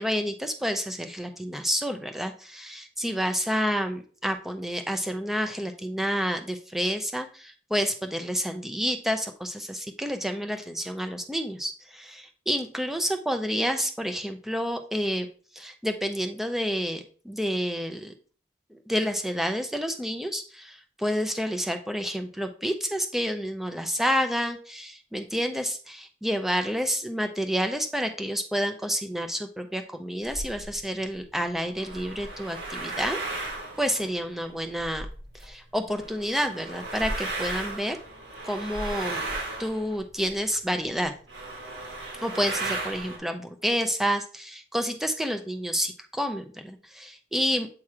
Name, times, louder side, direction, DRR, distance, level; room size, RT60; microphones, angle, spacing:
voice 1, 0.0-15.3 15.5-18.1 18.9-33.2 33.8-35.1 35.3-38.0 38.4-39.2 39.6-41.1 42.2-47.7, equal, ahead, 6 dB, 0.6 m, -29 dB
sound 1, 30.2-30.8 31.6-35.5 35.9-40.5 41.0-41.1 41.3-43.2, right 2 dB, 80° right, 3.2 m, -35 dB
8.4 x 3.1 x 4.9 m, 0.41 s
head